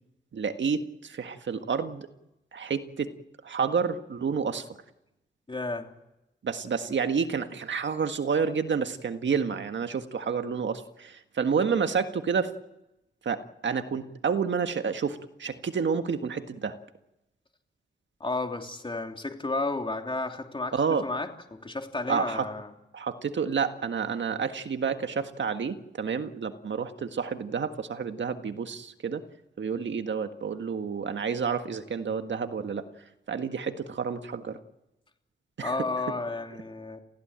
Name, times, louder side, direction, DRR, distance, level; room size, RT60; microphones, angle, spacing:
voice 1, 0.3-2.1 2.5-3.1 3.4-4.6 6.4-12.5 13.2-16.8 20.7-21.0 22.1-22.4 22.9-29.2 29.6-32.8 33.3-34.6 35.6-35.7, right 6 dB, 70° right, 8 dB, 1.7 m, -29 dB
voice 2, 5.5-5.9 18.2-22.7 35.6-37.0, left 2 dB, 25° left, 4 dB, 3.1 m, -32 dB
28.0 x 16.0 x 9.0 m, 0.91 s
cardioid pair, 80°, 20 cm